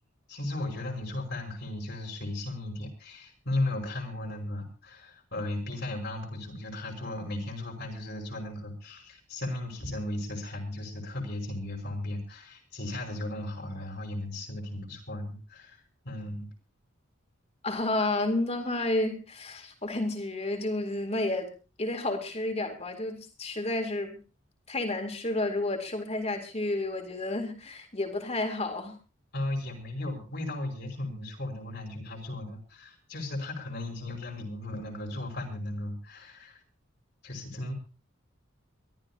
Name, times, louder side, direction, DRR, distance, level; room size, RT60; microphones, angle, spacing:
voice 1, 0.3-15.8 16.0-16.5 29.3-36.6 37.2-37.7, left 1 dB, 55° left, 1 dB, 5.6 m, -36 dB
voice 2, 17.6-21.5 21.8-24.2 24.7-29.0, left 2 dB, 30° left, 5 dB, 3.7 m, -31 dB
24.0 x 14.0 x 2.9 m, 0.35 s
head